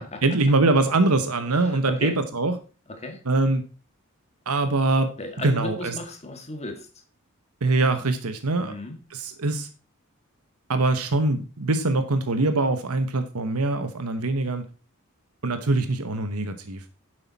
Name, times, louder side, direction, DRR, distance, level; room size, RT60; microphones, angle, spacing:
voice 1, 0.0-2.6 3.3-3.6 4.5-5.1 5.4-5.9 7.6-8.7 9.1-9.7 10.7-14.6 15.4-16.9, right 2 dB, 85° right, 9 dB, 1.1 m, -23 dB
voice 2, 1.5-2.2 2.9-3.2 5.2-6.9 8.6-9.0, left 2 dB, 30° left, 5 dB, 1.9 m, -35 dB
10.0 x 7.8 x 4.1 m, 0.35 s
head